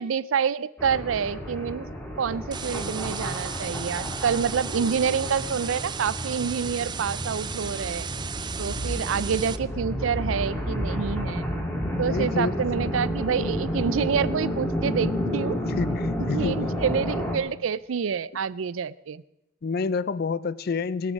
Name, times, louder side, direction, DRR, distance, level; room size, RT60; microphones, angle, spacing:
voice 1, 0.0-1.9 2.2-8.1 8.6-11.5 12.0-15.6 16.3-19.2, right 6 dB, 90° right, 19 dB, 0.4 m, -27 dB
sound 1, 0.8-17.4, equal, 10° left, 2.1 m, -31 dB
sound 2, 2.5-9.6, right 7 dB, 25° right, 0.4 m, -36 dB
sound 3, 8.5-16.3 16.6-16.7, right 1 dB, 35° left, 2.4 m, -38 dB
voice 2, 12.0-12.6 15.8-16.8 18.3-18.4 19.6-21.1, left 4 dB, 50° left, 18 dB, 0.4 m, -29 dB
20.5 x 8.5 x 5.2 m, 0.90 s
head